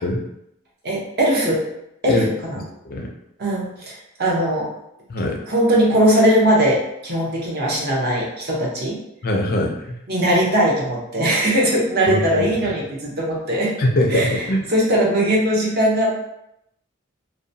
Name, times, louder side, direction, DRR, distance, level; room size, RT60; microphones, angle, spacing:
voice 1, 0.8-1.7 2.0-2.6 3.4-4.7 5.5-9.0 10.1-13.7 14.1-16.2, equal, 50° right, -3 dB, 0.7 m, -20 dB
voice 2, 5.1-5.4 9.2-10.0 12.1-12.5 13.8-14.6, left 1 dB, 45° left, 1 dB, 0.4 m, -22 dB
2.8 x 2.1 x 2.6 m, 0.82 s
head